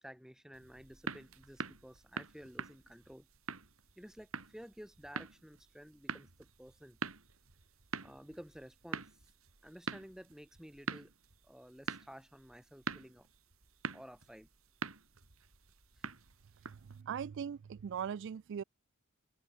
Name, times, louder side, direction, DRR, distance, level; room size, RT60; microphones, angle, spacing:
voice 1, 0.0-3.3 4.0-7.0 8.0-9.0 9.6-11.1 11.4-13.3 13.9-14.5 16.0-16.1, equal, 5° right, 5.8 m, -53 dB
sound 1, 0.5-17.0, right 4 dB, 80° right, 2.9 m, -45 dB
voice 2, 16.9-18.6, right 7 dB, 60° right, 0.3 m, -39 dB
open air
head